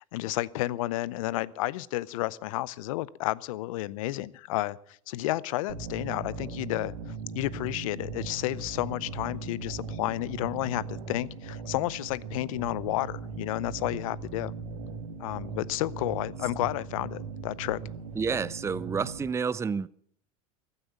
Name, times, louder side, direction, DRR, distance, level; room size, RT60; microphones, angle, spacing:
voice 1, 0.0-4.8 5.1-6.9 7.3-14.5 15.2-17.8, left 17 dB, 70° left, 0.6 m, -31 dB
sound 1, 5.7-19.3, right 4 dB, 85° right, 1.9 m, -39 dB
voice 2, 18.2-19.9, right 5 dB, 15° right, 0.5 m, -29 dB
15.0 x 9.7 x 8.5 m
hypercardioid pair, 85°, 18 cm